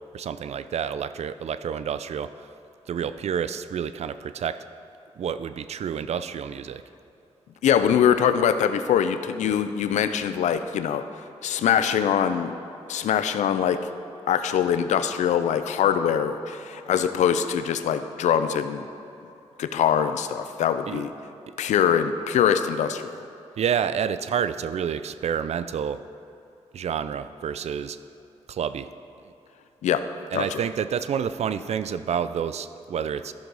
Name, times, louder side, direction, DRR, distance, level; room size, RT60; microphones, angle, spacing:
voice 1, 0.1-2.5 2.9-4.6 5.2-6.8 20.9-21.1 23.6-26.0 26.7-28.0 28.5-28.9 30.3-33.3, right 8 dB, 65° right, 13 dB, 0.4 m, -29 dB
voice 2, 7.6-11.0 11.4-12.5 12.9-13.8 14.3-18.9 19.6-21.1 21.6-23.1 29.8-30.0 30.3-30.6, left 8 dB, 90° left, 10 dB, 0.5 m, -23 dB
13.5 x 6.3 x 4.0 m, 2.7 s
cardioid pair, 65°, 12 cm